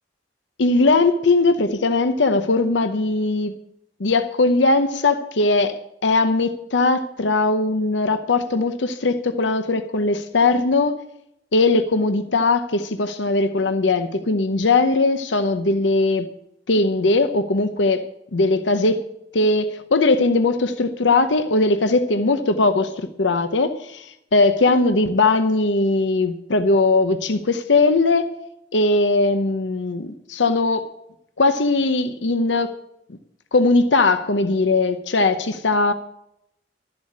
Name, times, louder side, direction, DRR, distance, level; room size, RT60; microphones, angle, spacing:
voice 1, 0.6-3.5 4.0-5.8 6.0-11.0 11.5-16.3 16.7-18.0 18.3-19.0 19.3-28.3 28.7-30.9 31.4-32.7 33.1-33.2 33.5-35.9, left 3 dB, 75° left, 10 dB, 0.8 m, -19 dB
12.5 x 7.8 x 8.6 m, 0.79 s
head